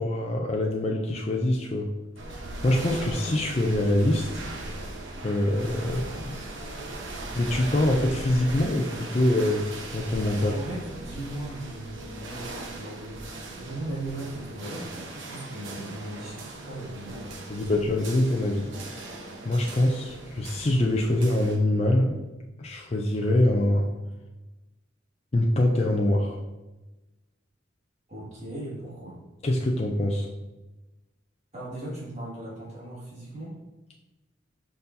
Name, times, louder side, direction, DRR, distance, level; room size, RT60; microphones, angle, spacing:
voice 1, 0.0-1.9 2.3-4.3 5.2-6.4 7.3-9.7 9.9-10.5 17.5-18.7 19.5-22.2 22.6-23.9 25.3-26.4 29.4-30.3, left 1 dB, 30° left, 0 dB, 0.5 m, -24 dB
sound 1, 2.2-21.6, right 2 dB, 75° right, 0.9 m, -39 dB
voice 2, 10.3-17.7 28.1-29.2 31.5-33.6, right 1 dB, 35° right, -6 dB, 2.1 m, -38 dB
6.5 x 5.4 x 2.7 m, 1.1 s
head